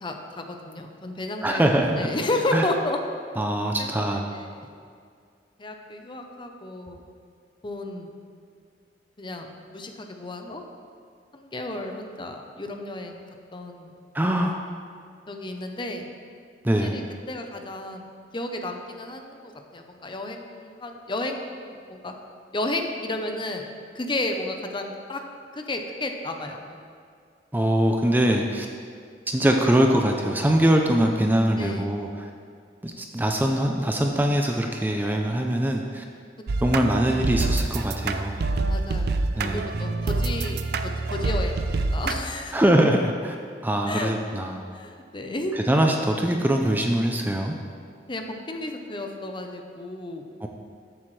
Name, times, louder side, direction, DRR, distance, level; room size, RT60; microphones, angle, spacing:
voice 1, 0.0-3.0 3.8-4.6 5.6-7.0 7.6-8.1 9.2-10.6 11.3-13.2 13.5-13.9 15.3-16.0 16.8-18.1 18.3-22.1 22.5-23.6 23.9-25.2 25.5-26.8 31.6-31.9 36.6-36.7 38.7-39.2 39.5-42.6 43.9-44.1 44.7-45.6 48.1-50.2, left 2 dB, 25° left, 4 dB, 0.8 m, -32 dB
voice 2, 1.4-2.1 2.5-2.7 3.4-4.2 14.1-14.5 16.6-17.0 27.5-28.7 29.3-32.3 32.8-36.0 36.6-38.4 39.4-39.7 42.5-43.4 43.6-44.6 45.7-47.6 50.4-50.5, right 1 dB, 10° right, 2 dB, 0.5 m, -22 dB
sound 1, 36.5-42.2, right 3 dB, 65° right, 0.5 m, -26 dB
13.5 x 7.9 x 3.3 m, 2.2 s
head